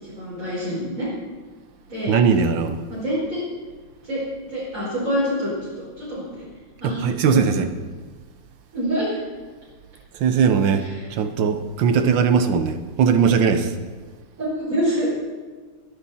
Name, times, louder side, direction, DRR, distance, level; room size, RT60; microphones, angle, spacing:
voice 1, 0.0-1.1 1.9-2.2 2.9-3.4 4.0-4.2 4.5-6.5 6.8-7.4 8.7-9.2 10.8-11.1 14.4-15.1, equal, 35° right, -10 dB, 5.3 m, -26 dB
voice 2, 2.1-2.8 6.8-7.7 10.1-13.7, right 6 dB, 65° right, 9 dB, 1.5 m, -19 dB
21.5 x 10.5 x 4.2 m, 1.4 s
omnidirectional pair, 2.4 m